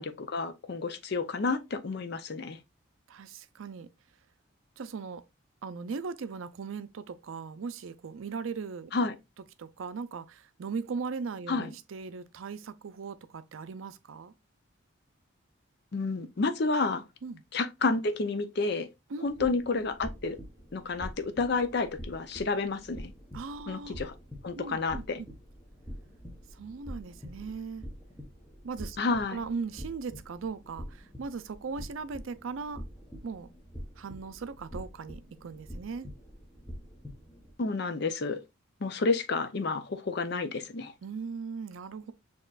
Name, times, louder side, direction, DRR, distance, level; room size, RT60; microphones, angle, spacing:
voice 1, 0.0-2.6 8.9-9.1 11.5-11.7 15.9-17.0 17.5-18.9 19.2-20.4 20.7-23.1 23.7-24.1 24.4-25.2 29.0-29.4 37.6-38.4 38.8-40.9, left 3 dB, 55° left, 0.5 m, -30 dB
voice 2, 3.1-3.9 4.8-5.2 5.6-8.9 9.6-14.3 17.2-17.4 19.1-19.5 23.3-24.0 24.5-25.3 26.5-27.9 28.6-29.0 29.3-32.8 33.2-33.5 34.0-36.1 41.0-42.1, right 5 dB, 75° right, 0.4 m, -38 dB
sound 1, 19.2-37.5, equal, 5° left, 0.8 m, -46 dB
6.5 x 3.0 x 2.4 m
head